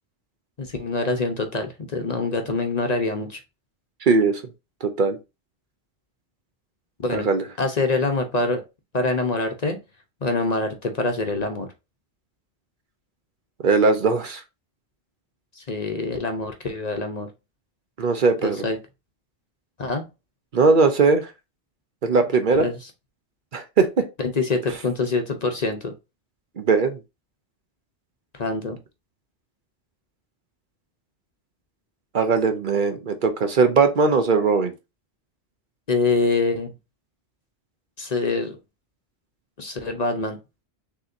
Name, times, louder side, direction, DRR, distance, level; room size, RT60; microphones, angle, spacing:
voice 1, 0.6-3.4 7.0-7.3 7.6-8.6 8.9-9.8 10.2-11.7 15.6-17.3 18.4-18.8 19.8-20.1 22.6-22.7 24.2-25.9 28.3-28.8 35.9-36.7 38.0-38.6 39.6-40.4, left 3 dB, 45° left, 0.7 m, -25 dB
voice 2, 4.0-4.4 4.8-5.2 7.1-7.4 13.6-14.4 18.0-18.6 20.5-21.3 22.0-22.7 23.5-24.0 26.6-27.0 32.1-34.7, right 4 dB, 55° right, 0.8 m, -19 dB
6.5 x 2.9 x 2.5 m
omnidirectional pair, 1.1 m